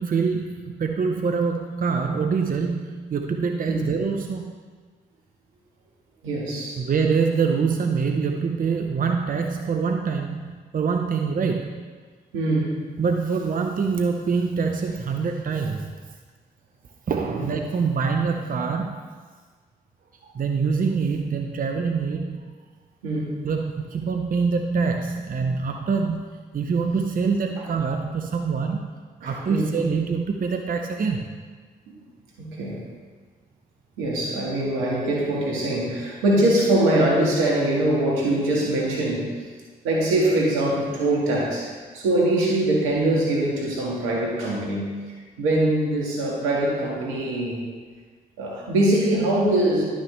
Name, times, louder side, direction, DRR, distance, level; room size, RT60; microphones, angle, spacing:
voice 1, 0.0-4.4 6.8-11.9 13.0-15.9 17.1-19.0 20.3-22.5 23.4-28.9 29.2-31.3, right 5 dB, 45° right, 3 dB, 0.8 m, -25 dB
voice 2, 6.2-6.8 12.3-12.8 17.3-17.5 23.0-23.4 29.2-29.7 31.9-32.0 32.4-32.8 34.0-39.3 39.8-44.9 45.4-47.7 48.4-49.8, right 1 dB, 85° right, -3 dB, 1.9 m, -23 dB
11.5 x 6.2 x 3.3 m, 1.5 s
hypercardioid pair, 45°, 20 cm